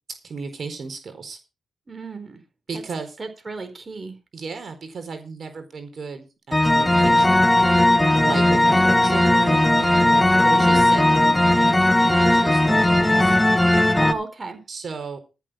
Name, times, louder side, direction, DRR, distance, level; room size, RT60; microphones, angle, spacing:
voice 1, 0.2-1.4 2.7-3.2 4.3-7.8 8.2-13.4 14.7-15.2, right 4 dB, 55° right, 7 dB, 4.4 m, -35 dB
voice 2, 1.9-2.4 2.7-2.8 3.2-4.2 10.5-10.8 14.0-14.6, right 3 dB, 35° right, 7 dB, 4.3 m, -34 dB
sound 1, 6.5-14.1, left 1 dB, 10° left, 1.6 m, -17 dB
14.0 x 7.4 x 6.1 m, 0.31 s
cardioid pair, 65°, 0 cm